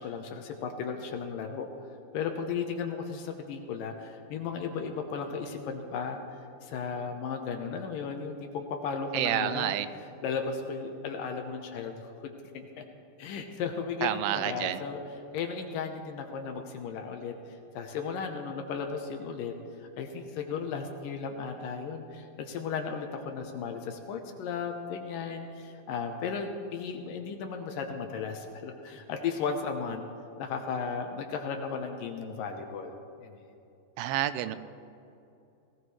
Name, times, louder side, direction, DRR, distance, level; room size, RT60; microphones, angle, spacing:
voice 1, 0.0-1.7 2.1-6.2 6.6-9.8 10.2-12.8 13.2-15.0 15.3-17.3 17.7-19.5 19.8-30.0 30.4-33.4, left 5 dB, 75° left, 4 dB, 2.4 m, -35 dB
voice 2, 9.1-9.9 14.0-14.8 34.0-34.6, right 13 dB, 90° right, 13 dB, 2.6 m, -29 dB
18.5 x 18.0 x 3.2 m, 2.7 s
omnidirectional pair, 4.5 m